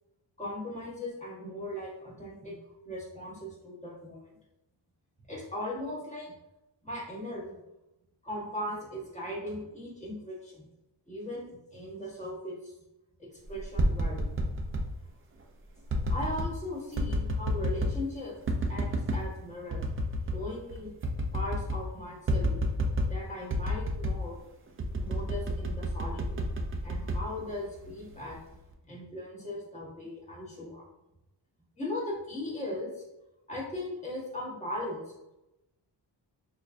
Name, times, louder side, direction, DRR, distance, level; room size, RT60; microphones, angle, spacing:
voice 1, 0.4-2.6 2.8-4.2 5.3-6.3 6.8-7.6 8.2-10.7 11.1-12.7 13.2-14.2 16.1-18.4 18.7-19.9 20.3-20.9 21.3-22.6 23.1-24.4 25.0-26.5 26.8-28.4 28.8-30.8 31.8-33.0 33.5-35.0, left 1 dB, 15° left, -5 dB, 1.2 m, -38 dB
sound 1, 13.5-14.9 15.9-16.5 17.0-18.0 18.5-19.2 19.7-20.4 20.7-20.8 21.0-21.9 22.3-23.2 23.5-24.2 24.8-27.9 28.3-28.7, equal, 30° right, 0.4 m, -30 dB
6.2 x 2.4 x 2.5 m, 0.93 s
wide cardioid pair, 120°, 45 cm